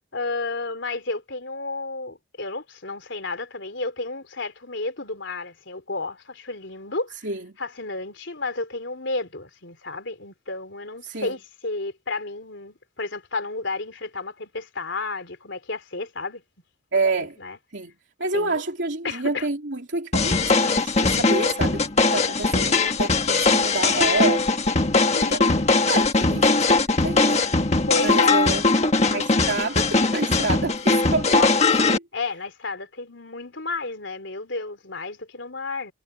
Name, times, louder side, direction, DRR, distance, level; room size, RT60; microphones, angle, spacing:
voice 1, 0.1-7.3 7.6-16.4 17.1-17.6 18.3-18.6 19.0-19.5 25.1-25.7 27.9-28.5 31.3-31.5 32.1-35.9, left 3 dB, 65° left, 3.8 m, -32 dB
voice 2, 11.0-11.3 16.9-17.4 17.7-17.9 18.2-24.4 25.3-25.4 25.9-27.5 28.0-28.6 29.1-31.6, right 3 dB, 65° right, 3.3 m, -28 dB
sound 1, 20.1-32.0, left 3 dB, 35° left, 1.5 m, -20 dB
head